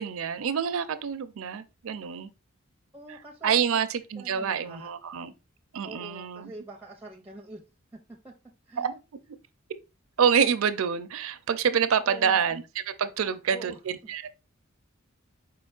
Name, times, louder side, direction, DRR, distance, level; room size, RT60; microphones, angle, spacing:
voice 1, 0.0-2.3 3.4-5.3 5.7-6.5 8.8-8.9 10.2-14.3, right 7 dB, 70° right, 0.4 m, -27 dB
voice 2, 2.9-3.8 4.2-4.9 5.8-7.6 8.2-8.3 8.7-9.0 12.0-12.4 13.2-14.3, right 2 dB, 5° right, 0.5 m, -45 dB
4.8 x 4.4 x 2.3 m
head